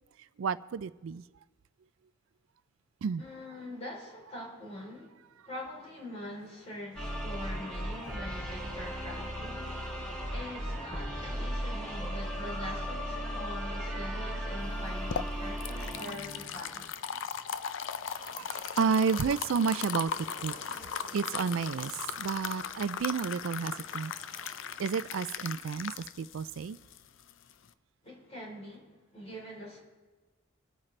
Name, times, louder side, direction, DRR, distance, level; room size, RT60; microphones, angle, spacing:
voice 1, 0.4-1.2 3.0-3.2 13.9-14.4 17.6-17.7 18.2-20.8 21.1-24.2 24.4-24.5 24.8-26.8, right 6 dB, 70° right, 16 dB, 0.4 m, -31 dB
voice 2, 3.2-5.2 5.5-9.7 10.3-16.9 28.0-29.8, left 1 dB, 30° left, -2 dB, 3.5 m, -44 dB
sound 1, 6.3-25.2, left 1 dB, 85° left, 3.7 m, -55 dB
sound 2, 6.9-16.9, equal, 5° left, 3.2 m, -36 dB
sound 3, 14.7-27.7, left 7 dB, 65° left, 0.5 m, -38 dB
25.5 x 8.9 x 3.3 m, 1.3 s
head